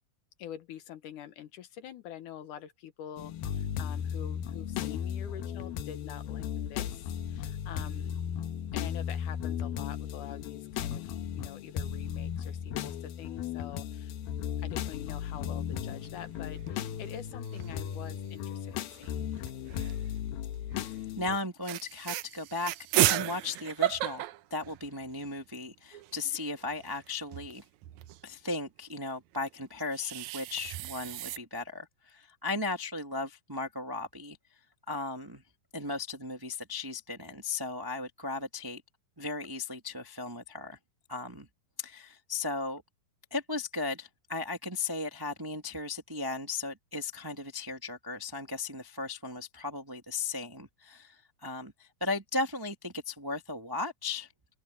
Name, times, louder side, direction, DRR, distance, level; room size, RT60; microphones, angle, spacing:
voice 1, 0.4-8.2 8.7-14.1 14.6-19.3, left 10 dB, 65° left, 2.5 m, -46 dB
sound 1, 3.2-21.4, left 9 dB, 85° left, 3.0 m, -36 dB
sound 2, 16.0-16.7 17.1-17.2 17.4-18.0 18.9-20.1 20.7-20.9 21.3-21.4 21.6-25.3 25.7-25.8 25.9-28.2 29.5-31.4, right 15 dB, 85° right, 1.7 m, -34 dB
voice 2, 21.2-22.7 23.1-24.2 24.5-27.6 28.2-34.4 34.9-35.4 35.7-38.8 39.2-40.8 41.1-41.5 41.8-42.8 43.3-54.3, left 3 dB, 30° right, 0.4 m, -36 dB
open air
omnidirectional pair, 4.1 m